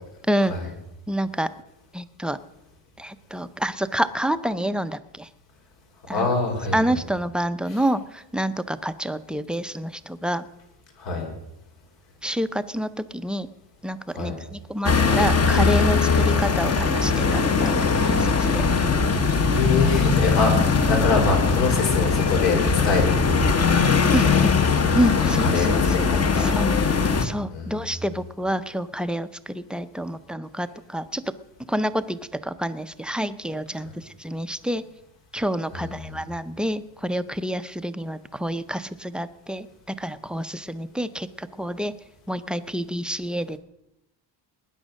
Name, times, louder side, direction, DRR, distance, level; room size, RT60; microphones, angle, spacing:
voice 1, 1.1-1.5 1.9-2.4 3.0-5.3 6.1-6.3 6.7-10.5 12.2-13.5 13.8-18.6 24.1-24.6 24.9-26.1 26.3-31.2 31.7-34.8 35.3-41.9 42.3-43.6, equal, ahead, 11 dB, 0.5 m, -28 dB
voice 2, 6.1-6.8 11.0-11.3 14.1-14.4 19.5-23.6 24.3-24.9 25.2-26.9 27.5-27.8 35.7-36.1, left 3 dB, 70° left, 2 dB, 5.3 m, -25 dB
sound 1, 14.8-27.2, left 5 dB, 35° left, 1.3 m, -20 dB
19.5 x 9.9 x 6.4 m, 0.86 s
cardioid pair, 135°, 45 cm